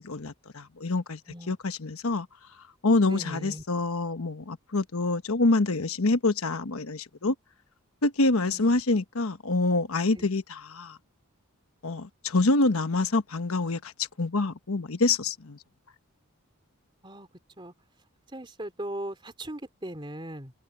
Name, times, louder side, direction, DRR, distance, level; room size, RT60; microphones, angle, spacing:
voice 1, 0.0-1.2 1.5-2.3 2.8-7.3 8.0-11.0 11.8-15.6, left 2 dB, 80° left, 1.1 m, -26 dB
voice 2, 3.1-3.6 8.4-8.8 10.1-10.3 17.0-17.3 17.6-17.7 18.3-20.5, right 1 dB, 20° right, 3.4 m, -39 dB
head